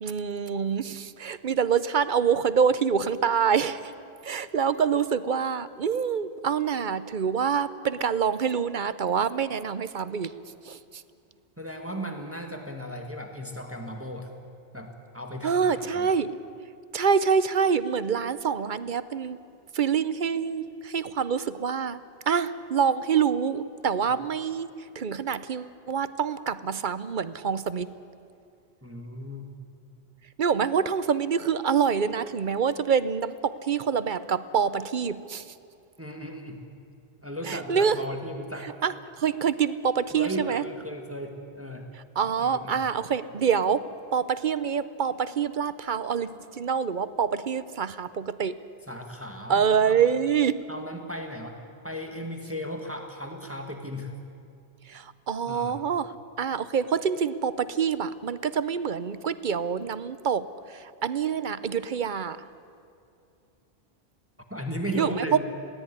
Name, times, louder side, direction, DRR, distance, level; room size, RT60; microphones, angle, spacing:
voice 1, 0.0-3.8 4.2-10.3 10.7-10.8 15.4-16.3 16.9-19.4 19.7-22.0 22.3-24.7 25.0-27.9 30.4-35.4 37.4-38.0 38.6-40.6 42.2-48.5 49.5-50.6 54.9-56.1 56.4-62.5 65.0-65.4, right 7 dB, 50° right, 14 dB, 0.8 m, -26 dB
voice 2, 11.6-14.3 14.7-16.1 28.8-29.4 36.0-36.6 37.2-38.8 40.1-41.9 42.4-42.8 48.9-50.1 50.7-51.6 51.8-54.1 55.5-55.8 64.5-65.4, equal, 10° right, 3 dB, 1.8 m, -36 dB
21.5 x 16.5 x 9.7 m, 2.5 s
omnidirectional pair, 1.1 m